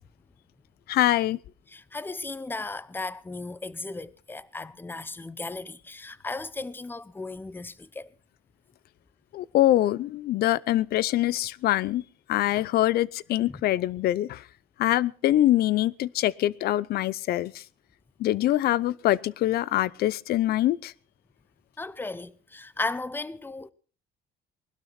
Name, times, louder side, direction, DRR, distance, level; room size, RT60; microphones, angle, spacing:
voice 1, 0.9-1.4 9.3-12.0 12.3-14.4 14.8-17.5 18.2-20.9, left 14 dB, 70° left, 0.6 m, -24 dB
voice 2, 1.7-8.1 13.5-13.6 21.8-23.7, left 3 dB, 10° left, 0.8 m, -36 dB
20.0 x 12.0 x 4.2 m
cardioid pair, 110°, 17 cm